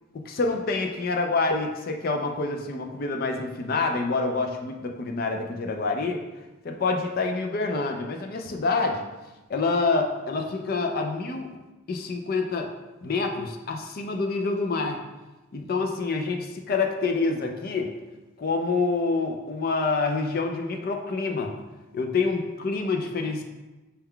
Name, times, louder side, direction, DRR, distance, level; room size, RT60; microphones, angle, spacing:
voice 1, 0.3-6.2 6.6-9.0 9.5-11.5 11.9-12.7 13.0-15.0 15.5-17.9 18.4-21.6 21.9-23.4, left 3 dB, 45° left, 3 dB, 0.4 m, -27 dB
5.5 x 2.3 x 3.6 m, 1.1 s
head